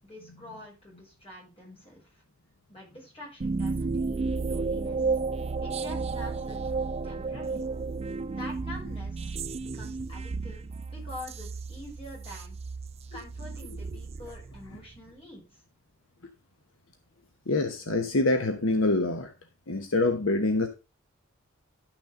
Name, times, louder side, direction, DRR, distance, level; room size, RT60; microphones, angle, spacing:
voice 1, 0.0-2.2 2.7-5.2 5.6-6.7 7.0-7.7 8.3-12.6 13.1-15.6, left 1 dB, 25° left, -3 dB, 6.9 m, -46 dB
sound 1, 3.4-15.0, right 4 dB, 30° right, 0.4 m, -33 dB
voice 2, 17.5-19.3 19.7-20.7, left 2 dB, 70° left, 6 dB, 1.1 m, -25 dB
12.0 x 6.2 x 3.7 m, 0.28 s
head